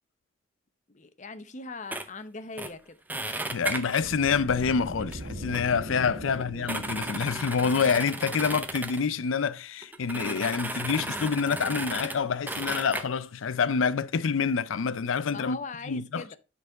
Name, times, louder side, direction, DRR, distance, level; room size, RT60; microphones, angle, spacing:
voice 1, 0.9-3.0 6.2-6.4 15.3-16.4, left 3 dB, 40° left, 0.8 m, -40 dB
sound 1, 1.9-2.1 2.6-2.7 3.1-4.0 5.0-5.1 5.5-5.6 6.1-6.2 6.4-9.0 9.8-12.2 12.5-13.0, right 2 dB, 10° right, 0.6 m, -34 dB
voice 2, 3.2-15.6 15.9-16.2, left 6 dB, 85° left, 0.5 m, -27 dB
sound 2, 4.0-8.9, right 1 dB, 60° right, 1.8 m, -41 dB
9.3 x 4.0 x 4.6 m
head